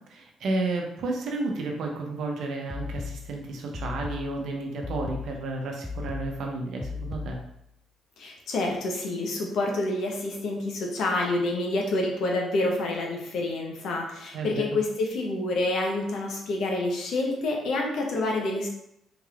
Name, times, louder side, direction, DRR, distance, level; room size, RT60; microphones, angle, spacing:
voice 1, 0.1-7.4 14.3-14.8, right 2 dB, 75° right, 1 dB, 0.7 m, -32 dB
sound 1, 2.7-7.7, left 4 dB, 5° left, 0.3 m, -37 dB
voice 2, 8.2-18.7, left 2 dB, 75° left, 1 dB, 0.8 m, -28 dB
3.7 x 3.1 x 2.4 m, 0.78 s
cardioid pair, 90°, 0 cm